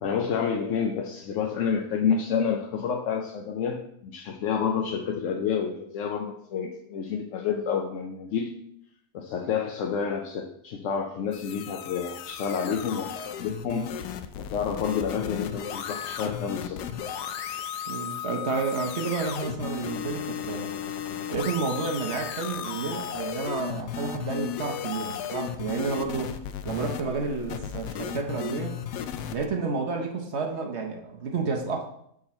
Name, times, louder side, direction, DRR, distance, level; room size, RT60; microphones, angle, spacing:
voice 1, 0.0-8.5 9.1-16.8, left 6 dB, 65° left, 2 dB, 0.9 m, -29 dB
sound 1, 11.3-29.5, left 9 dB, 90° left, 1.2 m, -35 dB
voice 2, 17.9-20.7 21.3-26.3 26.6-28.8 29.3-31.9, right 4 dB, 50° right, 2 dB, 1.0 m, -30 dB
6.3 x 4.9 x 4.2 m, 0.72 s
omnidirectional pair, 1.7 m